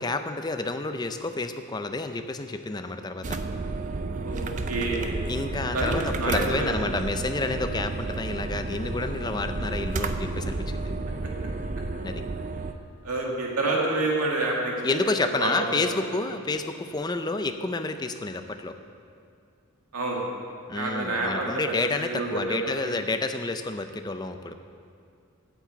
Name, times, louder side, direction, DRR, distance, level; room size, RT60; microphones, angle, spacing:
voice 1, 0.0-3.4 5.3-10.9 12.0-12.2 14.8-18.7 20.7-24.5, left 3 dB, 20° left, 8 dB, 0.5 m, -30 dB
sound 1, 3.2-12.7, right 3 dB, 35° right, 0.5 m, -31 dB
voice 2, 4.2-5.1 5.7-6.9 13.0-15.5 15.9-16.0 19.9-20.4 20.7-22.9, right 2 dB, 90° right, -2 dB, 2.1 m, -28 dB
9.1 x 7.4 x 8.2 m, 2.3 s
head